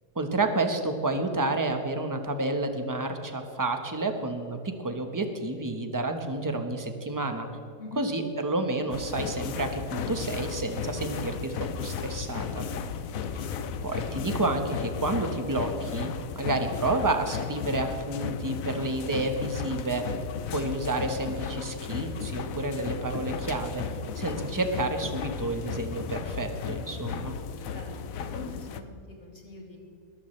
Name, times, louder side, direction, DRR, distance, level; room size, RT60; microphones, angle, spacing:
voice 1, 0.1-7.5 8.0-12.7 13.3-13.4 13.8-16.1 16.3-20.1 20.5-23.8 24.1-27.3, right 2 dB, 15° right, 6 dB, 1.0 m, -30 dB
sound 1, 8.9-28.8, left 6 dB, 65° left, 1.1 m, -35 dB
voice 2, 28.2-29.8, left 2 dB, 45° left, -2 dB, 3.3 m, -43 dB
21.5 x 13.5 x 3.3 m, 2.6 s
omnidirectional pair, 1.7 m